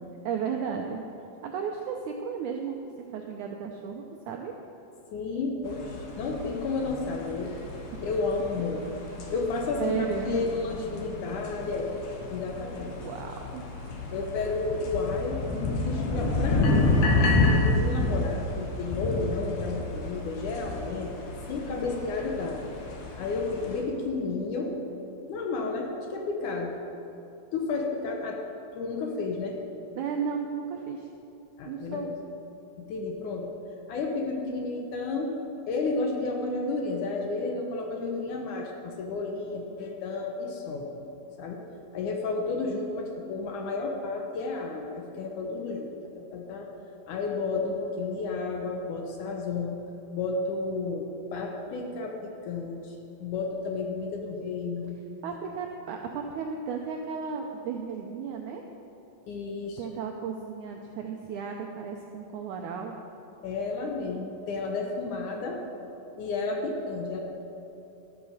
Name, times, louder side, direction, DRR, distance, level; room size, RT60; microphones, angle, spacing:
voice 1, 0.2-1.0 1.4-2.8 3.1-4.5 9.8-10.5 12.9-13.7 20.9-21.1 30.0-31.1 31.7-32.1 55.2-58.6 59.8-63.0, right 6 dB, 80° right, 2 dB, 1.7 m, -34 dB
voice 2, 5.1-7.5 8.0-8.9 9.3-11.9 12.3-12.9 14.1-15.4 15.9-21.1 21.5-22.6 23.2-24.7 25.3-26.8 27.5-28.4 28.7-29.6 31.6-32.1 32.8-33.5 33.9-35.4 35.7-41.1 41.4-41.6 41.9-46.7 47.1-49.8 50.1-53.0 53.2-55.0 59.3-59.8 63.4-65.6 66.2-67.2, left 3 dB, 70° left, 2 dB, 2.1 m, -32 dB
sound 1, 5.6-23.8, left 2 dB, 90° left, 3.4 m, -30 dB
12.5 x 8.8 x 6.5 m, 2.9 s
omnidirectional pair, 4.3 m